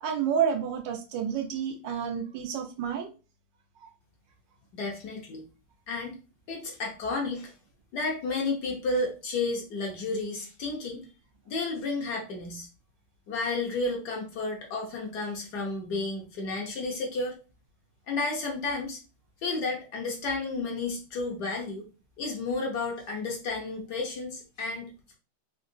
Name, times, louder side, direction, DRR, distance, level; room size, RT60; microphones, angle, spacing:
voice 1, 0.0-3.1 3.8-3.9, right 8 dB, 70° right, 5 dB, 1.3 m, -30 dB
voice 2, 4.7-5.4 5.9-6.2 6.5-7.5 7.9-11.1 11.5-12.7 13.3-17.4 18.1-19.0 19.4-21.9 22.2-25.1, left 3 dB, 65° left, 0 dB, 1.2 m, -32 dB
3.8 x 2.8 x 2.5 m, 0.32 s
omnidirectional pair, 2.2 m